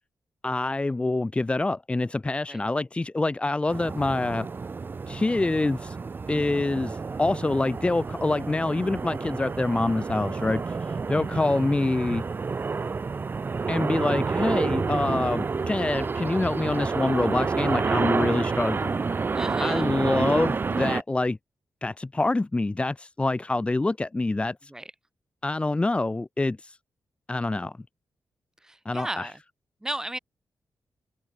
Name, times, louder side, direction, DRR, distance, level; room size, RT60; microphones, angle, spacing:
voice 1, 0.4-4.5 5.1-6.0 6.3-12.2 13.7-19.3 19.6-21.4 21.8-24.7 25.4-26.8 27.3-27.8 28.8-29.3, left 2 dB, 15° left, 1.4 m, -26 dB
sound 1, 3.7-21.0, right 4 dB, 30° right, 0.9 m, -29 dB
voice 2, 19.3-19.8 24.7-24.9 28.6-29.4 29.8-30.2, right 1 dB, 10° right, 4.8 m, -34 dB
open air
wide cardioid pair, 150°, 7 cm